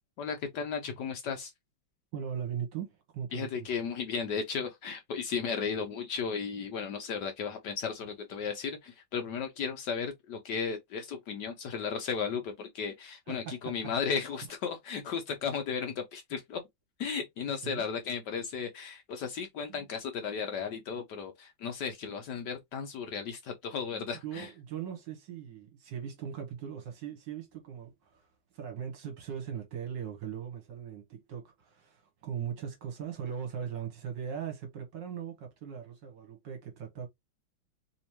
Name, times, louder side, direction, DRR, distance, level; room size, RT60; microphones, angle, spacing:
voice 1, 0.2-1.5 3.3-16.6 17.0-24.5, left 6 dB, 65° left, 1.1 m, -35 dB
voice 2, 2.1-3.7 13.3-13.8 17.6-17.8 19.7-19.8 23.9-28.3 28.5-37.1, right 8 dB, 65° right, 1.7 m, -39 dB
3.5 x 3.0 x 2.9 m
omnidirectional pair, 2.3 m